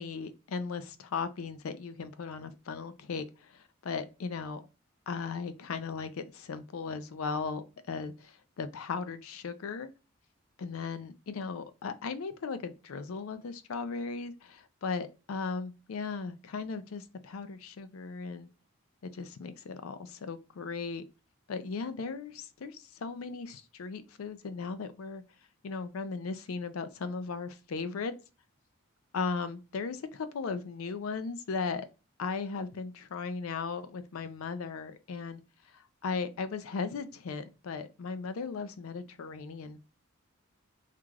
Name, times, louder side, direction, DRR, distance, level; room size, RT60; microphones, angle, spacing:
voice 1, 0.0-4.7 5.1-9.9 10.6-18.5 19.1-21.0 21.5-25.2 25.6-28.1 29.1-31.9 32.2-35.4 35.7-39.8, left 4 dB, 80° left, 0.4 m, -37 dB
2.4 x 2.3 x 3.1 m
head